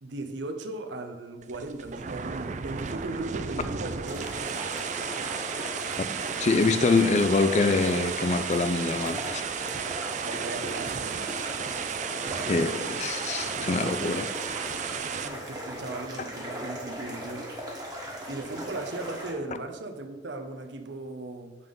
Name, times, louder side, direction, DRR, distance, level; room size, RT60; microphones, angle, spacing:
voice 1, 0.0-4.6 10.2-11.3 15.0-17.4 18.3-21.5, right 2 dB, 80° right, 5 dB, 0.8 m, -37 dB
sound 1, 1.4-15.3, right 6 dB, 40° right, 0.4 m, -33 dB
sound 2, 4.0-19.3, equal, 20° right, 1.4 m, -38 dB
voice 2, 6.4-9.5 12.5-14.3, left 3 dB, 40° left, 11 dB, 0.4 m, -25 dB
8.1 x 3.7 x 5.2 m, 1.2 s
head